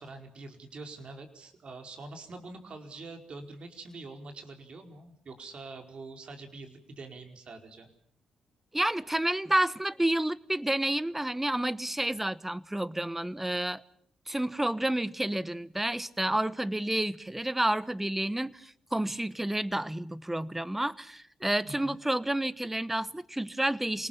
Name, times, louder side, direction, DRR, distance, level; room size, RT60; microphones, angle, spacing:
voice 1, 0.0-7.9 21.7-22.0, right 3 dB, 55° right, 4.7 m, -45 dB
voice 2, 8.7-13.8 14.3-24.1, right 1 dB, 10° right, 1.1 m, -30 dB
28.0 x 19.5 x 7.2 m
supercardioid pair, 60°, 2 cm